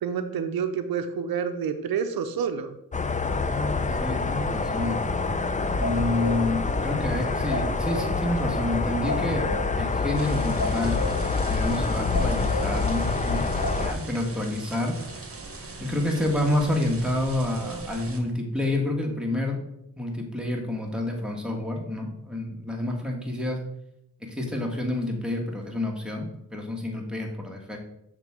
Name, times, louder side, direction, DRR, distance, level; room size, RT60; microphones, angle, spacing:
voice 1, 0.0-2.7, right 7 dB, 90° right, 9 dB, 0.6 m, -28 dB
sound 1, 2.9-13.9, left 4 dB, 20° left, 0.5 m, -27 dB
voice 2, 3.4-5.0 5.8-9.5 9.8-11.1 11.5-15.0 15.8-19.6 20.0-23.6 24.2-27.8, left 1 dB, ahead, 0 dB, 1.5 m, -28 dB
sound 2, 4.9-14.0, left 1 dB, 50° left, 2.0 m, -34 dB
sound 3, 10.1-18.2, right 3 dB, 40° right, 1.2 m, -41 dB
6.5 x 3.6 x 4.8 m, 0.78 s
cardioid pair, 60°, 35 cm